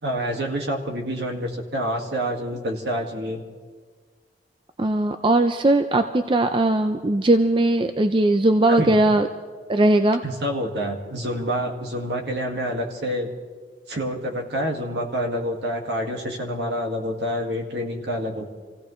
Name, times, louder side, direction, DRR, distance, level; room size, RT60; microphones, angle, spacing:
voice 1, 0.0-3.4 8.7-9.0 10.2-13.3 13.9-18.4, equal, 70° right, 1 dB, 1.9 m, -27 dB
voice 2, 4.8-9.3 9.7-10.2, right 2 dB, 25° right, 8 dB, 0.4 m, -19 dB
27.5 x 16.0 x 3.2 m, 1.5 s
head